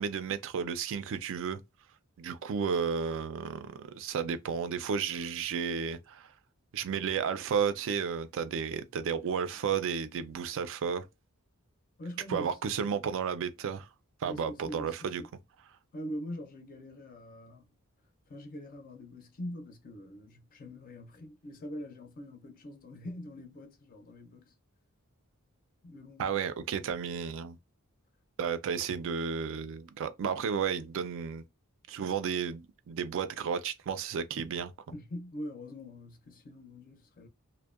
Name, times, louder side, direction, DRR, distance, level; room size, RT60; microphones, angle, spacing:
voice 1, 0.0-1.6 2.2-6.3 6.7-11.0 12.3-13.9 14.2-15.2 26.2-27.6 28.4-31.4 31.9-34.7, right 6 dB, 60° right, 0.3 m, -32 dB
voice 2, 12.0-13.0 14.2-15.3 15.9-17.6 18.3-24.5 25.8-26.4 34.9-37.3, equal, 40° left, 0.5 m, -43 dB
2.6 x 2.0 x 2.3 m
head